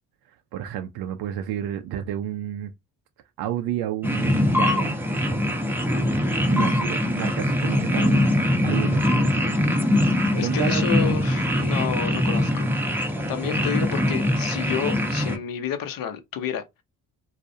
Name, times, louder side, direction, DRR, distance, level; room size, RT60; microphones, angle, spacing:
voice 1, 0.5-2.7 3.4-4.9 5.3-5.5 6.5-8.3 8.6-9.4 10.4-11.3, right 11 dB, 65° right, 0.5 m, -31 dB
sound 1, 4.0-15.4, left 1 dB, 5° right, 0.7 m, -22 dB
voice 2, 10.3-16.6, left 8 dB, 55° left, 0.7 m, -30 dB
2.4 x 2.0 x 2.7 m
supercardioid pair, 55°, 41 cm